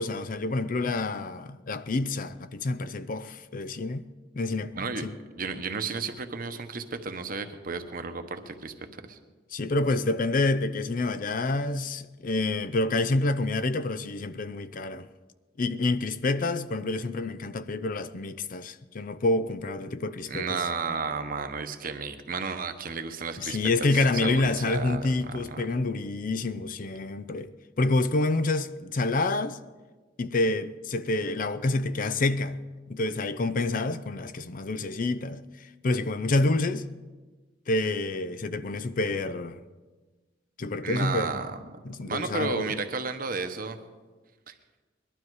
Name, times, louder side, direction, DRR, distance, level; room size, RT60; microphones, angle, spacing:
voice 1, 0.0-4.1 4.3-5.1 9.5-15.1 15.6-20.6 23.4-27.5 27.8-29.6 30.2-32.6 32.9-36.9 37.7-39.6 40.6-41.4 41.8-42.7, left 2 dB, 45° left, 0.5 m, -28 dB
voice 2, 4.7-5.0 5.3-8.7 9.1-9.2 20.3-25.7 40.8-41.6 42.0-43.8 44.5-44.6, right 4 dB, 50° right, 1.1 m, -33 dB
20.5 x 12.0 x 4.8 m
head